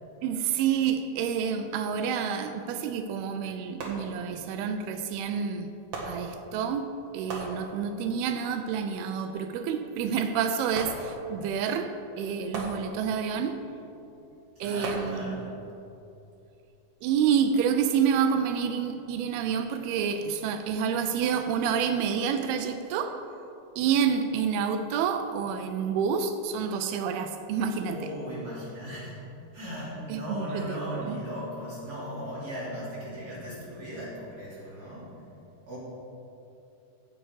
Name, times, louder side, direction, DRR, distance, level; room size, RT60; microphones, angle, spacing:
voice 1, 0.2-5.8 6.1-13.7 14.6-15.5 17.0-23.3 23.8-28.1 30.1-31.2, right 7 dB, 85° right, 2.5 m, -28 dB
sound 1, 3.8-4.6 5.9-6.8 7.3-8.2 10.7-11.6 12.5-13.5 14.8-15.7 16.3-16.4, right 2 dB, 55° right, 2.4 m, -39 dB
voice 2, 14.6-15.5 27.9-29.2 29.5-35.1 35.7-35.8, equal, 25° right, 3.0 m, -37 dB
15.0 x 6.8 x 4.8 m
omnidirectional pair, 4.5 m